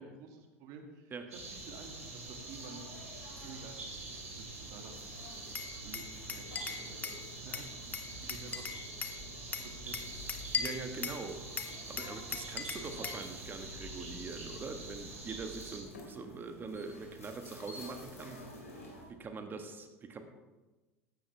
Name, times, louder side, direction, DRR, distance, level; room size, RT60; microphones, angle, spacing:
voice 1, 0.0-2.9 3.4-3.9 4.3-5.1 5.8-8.8 9.4-10.0, right 4 dB, 50° right, 4 dB, 2.1 m, -51 dB
sound 1, 1.3-15.8, right 3 dB, 80° right, 2.9 m, -46 dB
sound 2, 1.4-19.1, left 2 dB, 90° left, 3.6 m, -52 dB
Glass, 5.5-7.2 7.5-9.2 9.5-11.2 11.6-13.2, left 5 dB, 20° left, 1.0 m, -38 dB
voice 2, 10.6-11.4 11.9-18.4 19.1-20.2, right 4 dB, 25° right, 6 dB, 1.6 m, -43 dB
15.5 x 12.0 x 3.4 m, 1.2 s
figure-of-eight pair, 80°, 8 cm